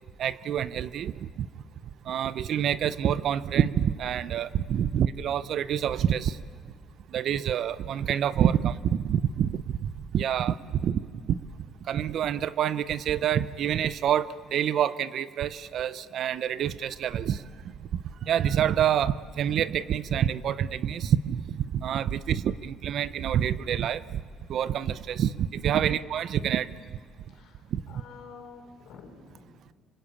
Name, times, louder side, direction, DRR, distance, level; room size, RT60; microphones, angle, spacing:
voice 1, 0.2-1.5 2.0-6.4 7.1-11.4 11.9-17.4 17.9-24.2 24.5-26.7 27.7-28.0, right 9 dB, 50° right, 17 dB, 0.7 m, -27 dB
voice 2, 27.3-29.6, left 5 dB, 60° left, 3 dB, 5.1 m, -49 dB
26.0 x 25.5 x 8.5 m, 2.1 s
cardioid pair, 170°, 0 cm